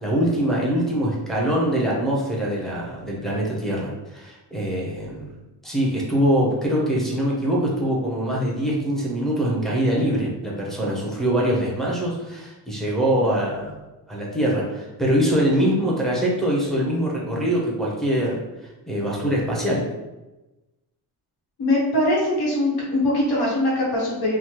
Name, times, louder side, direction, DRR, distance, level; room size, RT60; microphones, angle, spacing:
voice 1, 0.0-5.3 5.6-13.8 14.1-18.4 18.9-19.8, equal, ahead, -5 dB, 0.5 m, -23 dB
voice 2, 21.6-24.4, left 1 dB, 85° left, -5 dB, 1.0 m, -22 dB
3.1 x 2.1 x 2.8 m, 1.1 s
wide cardioid pair, 155°, 38 cm